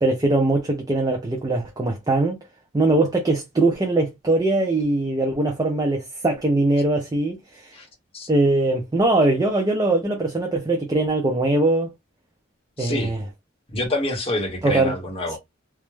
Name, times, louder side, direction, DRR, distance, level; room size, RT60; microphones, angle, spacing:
voice 1, 0.0-2.4 2.7-7.7 8.3-11.9 12.8-13.2 14.6-14.9 15.3-15.4, right 2 dB, 20° right, 0.3 m, -21 dB
voice 2, 12.8-13.2 13.7-15.4, left 1 dB, 30° left, 0.8 m, -27 dB
2.3 x 2.0 x 3.0 m
head